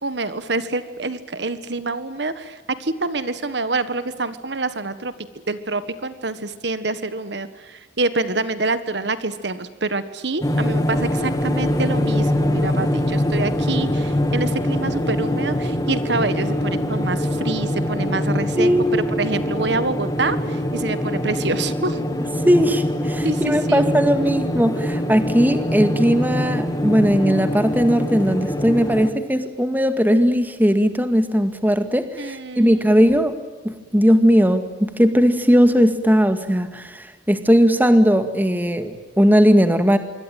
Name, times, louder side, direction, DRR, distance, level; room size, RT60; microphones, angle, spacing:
voice 1, 0.0-5.1 5.5-22.0 23.2-23.9 32.2-32.9, right 3 dB, 60° right, 13 dB, 1.5 m, -26 dB
sound 1, 10.4-29.1, left 1 dB, 20° left, 2.3 m, -23 dB
voice 2, 18.6-19.2 22.5-33.4 33.6-40.0, equal, 10° right, 9 dB, 2.0 m, -18 dB
26.5 x 24.0 x 9.2 m, 1.3 s
head